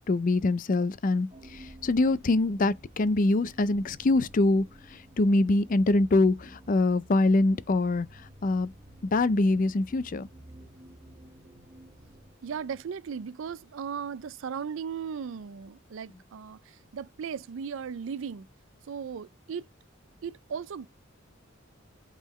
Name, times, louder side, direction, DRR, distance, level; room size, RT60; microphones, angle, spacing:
voice 1, 0.1-8.7 9.0-10.3, left 2 dB, 40° left, 0.4 m, -24 dB
sound 1, 1.3-13.2, right 1 dB, 25° right, 1.2 m, -52 dB
voice 2, 12.4-18.5 18.9-19.7 20.2-20.9, right 6 dB, 70° right, 0.4 m, -37 dB
8.2 x 3.8 x 3.1 m
head